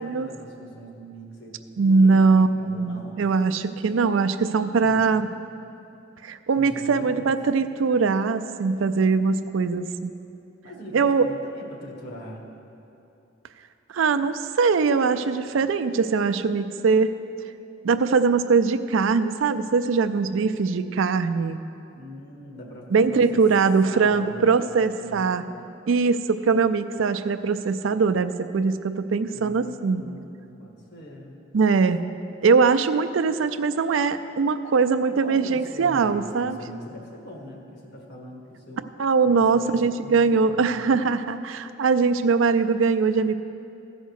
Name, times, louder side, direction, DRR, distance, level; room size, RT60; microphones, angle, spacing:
voice 1, 0.0-3.2 3.8-5.3 6.5-7.3 10.6-12.4 21.9-23.4 23.8-25.7 29.3-31.4 35.1-38.8 39.2-40.8, equal, 60° left, 0 dB, 1.7 m, -41 dB
voice 2, 1.8-5.3 6.2-10.1 10.9-11.3 13.9-17.1 17.8-21.6 22.9-25.4 25.9-30.0 31.5-32.0 32.4-36.6 39.0-43.3, right 4 dB, 75° right, 10 dB, 0.4 m, -21 dB
14.5 x 5.1 x 6.4 m, 2.7 s
head